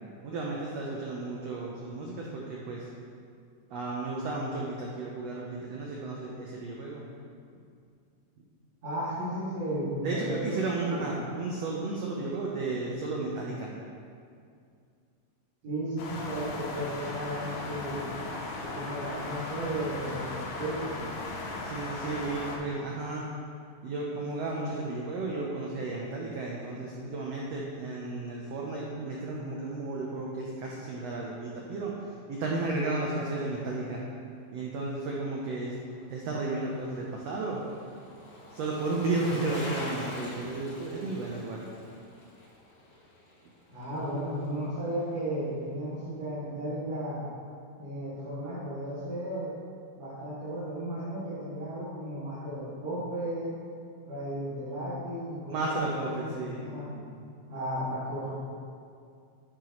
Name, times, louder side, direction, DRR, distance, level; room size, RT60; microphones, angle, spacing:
voice 1, 0.2-2.9 3.7-7.0 10.0-13.7 21.6-23.2 23.8-34.0 34.5-35.7 36.1-37.6 38.5-41.7 55.5-56.7, right 2 dB, 80° right, -3 dB, 1.4 m, -33 dB
voice 2, 8.8-11.1 15.6-18.0 18.6-21.2 43.7-47.2 47.8-49.5 50.0-53.5 54.1-55.8 56.6-57.1 57.5-58.3, right 1 dB, 50° right, -15 dB, 3.4 m, -34 dB
sound 1, 16.0-22.6, left 2 dB, 90° left, 3.0 m, -37 dB
Bicycle, 35.7-44.1 44.4-44.5, left 1 dB, 40° left, 1.2 m, -44 dB
9.8 x 9.0 x 3.1 m, 2.3 s
omnidirectional pair, 4.0 m